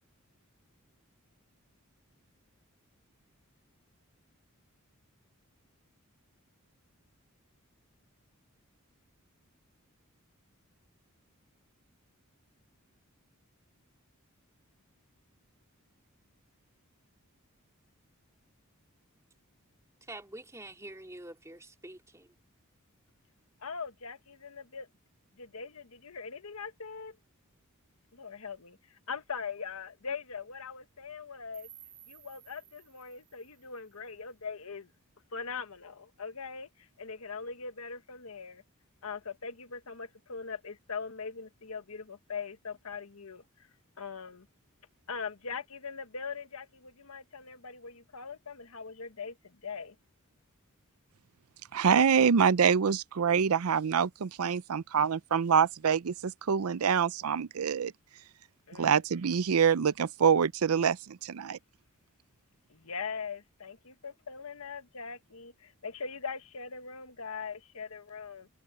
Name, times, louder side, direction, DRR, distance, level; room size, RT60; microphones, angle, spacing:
voice 1, 20.0-22.4, right 1 dB, 15° right, 2.8 m, -46 dB
voice 2, 23.6-24.9 25.4-27.2 28.1-31.7 32.1-34.9 35.3-38.6 39.0-43.7 44.0-44.5 45.1-49.9 58.7-59.0 62.7-68.5, left 5 dB, 75° left, 1.3 m, -41 dB
sound 1, 31.5-34.5, right 11 dB, 40° right, 2.1 m, -56 dB
voice 3, 51.7-57.9 58.8-61.6, right 7 dB, 80° right, 0.5 m, -26 dB
head